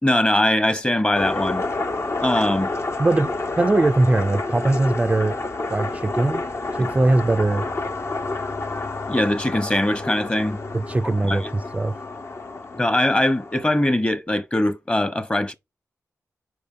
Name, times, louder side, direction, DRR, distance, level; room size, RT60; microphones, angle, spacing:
voice 1, 0.0-1.7 2.2-2.7 9.1-10.6 11.0-11.5 12.7-15.5, left 1 dB, 20° left, 1.1 m, -21 dB
sound 1, 1.1-13.9, left 2 dB, 50° left, 1.1 m, -29 dB
voice 2, 3.6-5.4 5.7-6.4 6.8-7.7 10.7-12.0, right 2 dB, 20° right, 0.4 m, -20 dB
5.0 x 4.6 x 5.5 m
cardioid pair, 60°, 6 cm